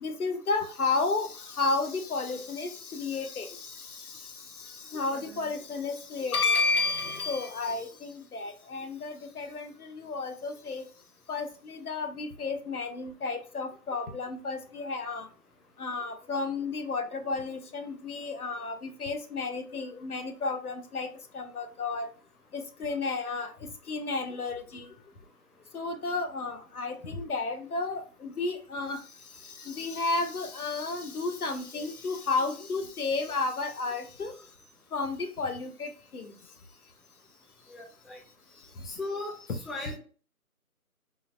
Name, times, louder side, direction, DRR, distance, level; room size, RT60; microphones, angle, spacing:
voice 1, 0.0-10.9 11.3-15.3 15.8-22.1 22.5-24.9 25.7-29.0 29.4-34.3 34.9-36.3, left 3 dB, 70° left, 8 dB, 0.8 m, -32 dB
voice 2, 5.1-5.5 37.7-38.2 38.8-40.0, left 2 dB, ahead, 0 dB, 0.3 m, -38 dB
3.8 x 2.1 x 2.4 m, 0.39 s
figure-of-eight pair, 165°, 45 cm